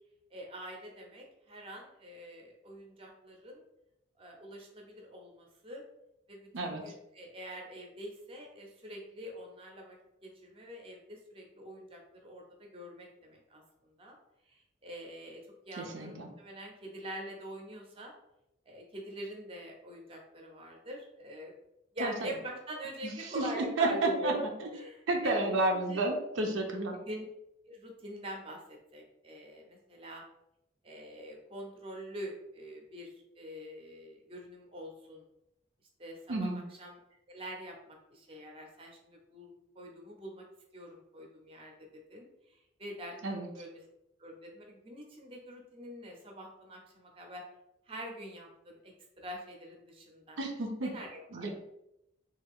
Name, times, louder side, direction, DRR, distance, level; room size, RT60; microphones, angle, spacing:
voice 1, 0.3-3.6 4.2-5.8 6.3-14.2 14.5-15.4 15.7-18.1 18.7-21.5 21.9-26.0 26.9-27.2 27.7-30.2 30.8-33.1 33.4-35.2 36.0-37.0 37.3-40.4 40.7-41.7 42.1-43.2 43.5-43.8 44.2-47.4 47.9-50.4 50.8-51.5, equal, 30° right, 1 dB, 0.6 m, -44 dB
voice 2, 15.8-16.3 22.0-22.1 23.3-23.5 23.8-24.3 25.1-27.0 36.3-36.6 43.2-43.5 50.4-50.9 51.3-51.5, right 2 dB, 80° right, 2 dB, 0.5 m, -31 dB
3.2 x 2.3 x 3.5 m, 0.84 s
head